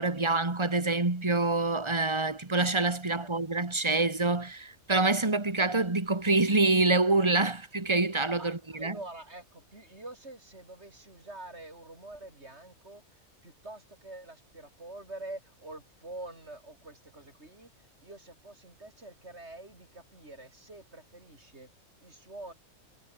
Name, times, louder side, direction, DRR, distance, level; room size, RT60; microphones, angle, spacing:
voice 1, 0.0-9.0, right 3 dB, 20° right, 2.1 m, -26 dB
voice 2, 8.4-22.5, right 2 dB, 45° right, 5.5 m, -46 dB
omnidirectional pair, 1.5 m